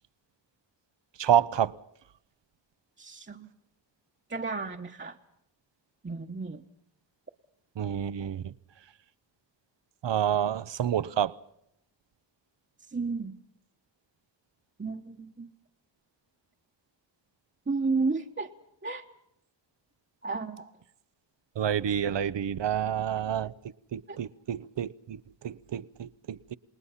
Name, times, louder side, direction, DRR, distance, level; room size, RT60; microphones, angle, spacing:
voice 1, 1.2-1.7 7.8-8.4 10.0-11.3 21.6-23.5 23.9-26.6, right 9 dB, 70° right, 0.8 m, -28 dB
voice 2, 3.0-3.5 4.3-5.2 6.0-6.6 12.9-13.3 14.8-15.5 17.7-18.5 18.8-19.1 20.2-20.7 24.1-24.2, right 4 dB, 25° right, 1.1 m, -32 dB
28.0 x 20.0 x 5.7 m
wide cardioid pair, 90°, 45 cm